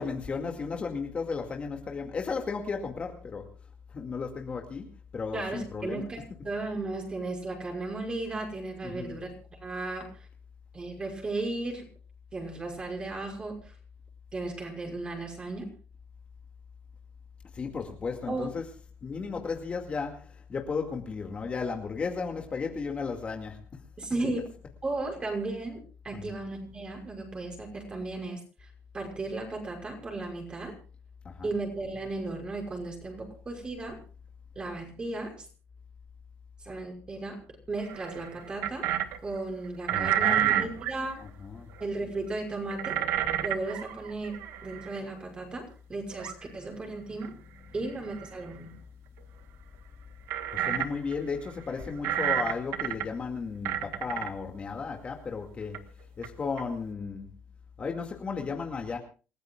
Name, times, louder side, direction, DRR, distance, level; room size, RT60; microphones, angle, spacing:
voice 1, 0.0-3.5 3.9-4.9 5.1-6.1 8.8-9.2 17.5-18.6 19.0-23.6 24.2-24.3 26.1-26.3 31.2-31.5 39.9-40.7 41.2-41.7 50.5-55.8 56.2-57.3 57.8-59.0, left 5 dB, 30° left, 2 dB, 2.2 m, -34 dB
voice 2, 5.3-10.3 10.7-11.9 12.3-13.7 14.3-15.7 18.3-18.5 24.0-24.5 24.8-30.8 31.4-34.0 34.6-35.5 36.6-37.4 37.7-38.9 39.2-41.2 41.8-43.0 43.4-44.4 44.6-47.3 47.7-48.7, right 2 dB, 25° right, 2 dB, 6.0 m, -35 dB
sound 1, 37.8-39.2 39.8-40.9 41.8-41.9 42.7-45.0 46.1-46.3 47.2-47.3 48.1-48.4 50.3-51.1 51.5-51.6 52.0-53.1 53.6-54.3 55.7-55.8 56.2-56.3 56.6-56.7, right 11 dB, 85° right, 1.5 m, -30 dB
28.0 x 15.0 x 2.4 m, 0.36 s
cardioid pair, 140°, 4 cm